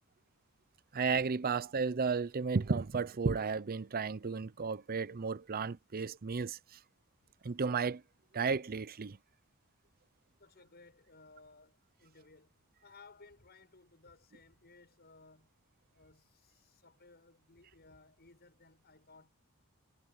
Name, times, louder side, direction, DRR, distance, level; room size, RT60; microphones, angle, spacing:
voice 1, 0.9-6.8 7.4-8.0 8.3-9.2, right 5 dB, 45° right, 0.6 m, -33 dB
voice 2, 10.4-12.5 12.8-15.5 15.9-19.3, left 3 dB, 50° left, 7.0 m, -60 dB
head